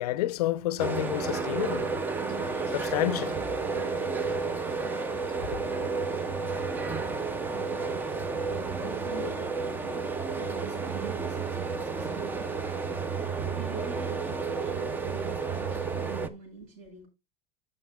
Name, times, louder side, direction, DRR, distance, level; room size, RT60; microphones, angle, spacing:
voice 1, 0.0-2.0 2.5-3.4 5.5-5.6, left 15 dB, 85° left, 0.5 m, -30 dB
sound 1, 0.8-16.3, right 4 dB, 10° right, 0.5 m, -31 dB
voice 2, 8.5-17.1, right 2 dB, 55° right, 6.7 m, -46 dB
15.0 x 6.3 x 2.3 m
supercardioid pair, 155°, 19 cm